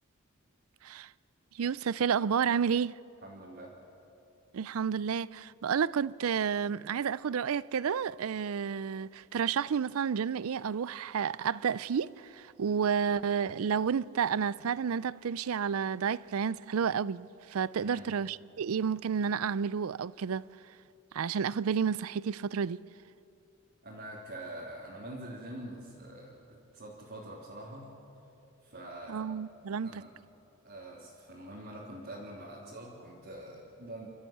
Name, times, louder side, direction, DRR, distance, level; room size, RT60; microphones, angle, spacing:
voice 1, 1.5-3.0 4.5-20.4 21.1-22.8 29.1-30.0, right 7 dB, 75° right, 0.4 m, -31 dB
voice 2, 3.2-3.7 17.8-18.1 23.8-27.9 28.6-29.2 29.8-30.1 30.6-34.1, right 1 dB, 50° right, 3.3 m, -45 dB
29.0 x 14.0 x 8.7 m
head